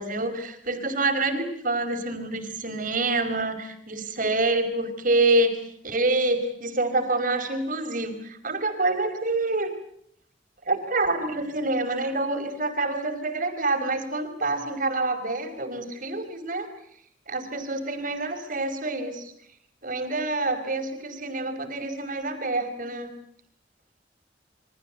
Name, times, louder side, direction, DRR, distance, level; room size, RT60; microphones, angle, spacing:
voice 1, 0.0-5.6 5.8-9.7 10.7-16.7 17.3-19.3 19.8-23.1, right 2 dB, 50° right, 7 dB, 4.8 m, -27 dB
28.5 x 24.5 x 8.1 m, 0.69 s
head